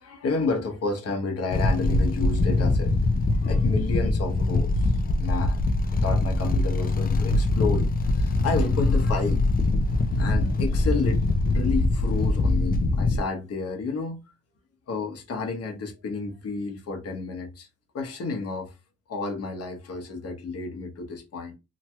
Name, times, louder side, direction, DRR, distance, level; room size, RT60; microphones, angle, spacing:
voice 1, 0.0-2.9 3.3-5.6 5.9-9.4 10.2-11.3 11.5-14.2 14.9-17.7 17.9-18.7 19.1-21.6, left 4 dB, 50° left, 1.0 m, -31 dB
sound 1, 1.5-13.2, left 2 dB, 30° left, 0.5 m, -23 dB
2.9 x 2.9 x 2.2 m
cardioid pair, 90°, 30 cm